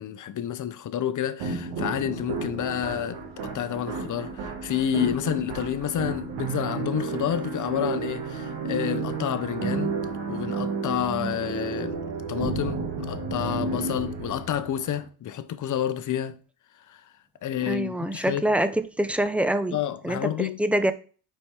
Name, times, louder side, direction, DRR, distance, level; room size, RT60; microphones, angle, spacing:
voice 1, 0.0-3.2 3.5-9.9 10.3-12.0 12.3-16.3 16.9-17.0 17.4-18.4 19.7-20.6, left 10 dB, 45° left, 0.8 m, -29 dB
sound 1, 1.4-15.1, right 4 dB, 75° right, 1.5 m, -32 dB
voice 2, 17.6-19.8 20.0-20.9, right 1 dB, 5° right, 0.5 m, -25 dB
5.3 x 4.4 x 4.6 m
cardioid pair, 95°, 45 cm